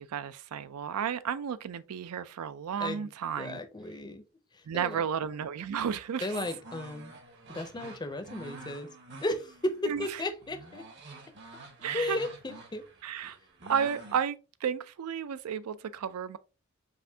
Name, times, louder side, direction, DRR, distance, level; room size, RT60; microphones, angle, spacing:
voice 1, 0.0-3.6 4.7-6.4 9.8-10.2 11.8-12.2 13.0-13.4 13.7-16.4, right 7 dB, 90° right, 0.4 m, -33 dB
voice 2, 3.4-4.2 4.5-5.0 6.2-7.1 7.5-8.9 9.2-9.7 10.0-10.8 11.9-12.8, left 1 dB, 20° left, 0.5 m, -35 dB
sound 1, 6.3-14.2, right 2 dB, 50° right, 1.0 m, -48 dB
5.4 x 2.5 x 2.7 m
head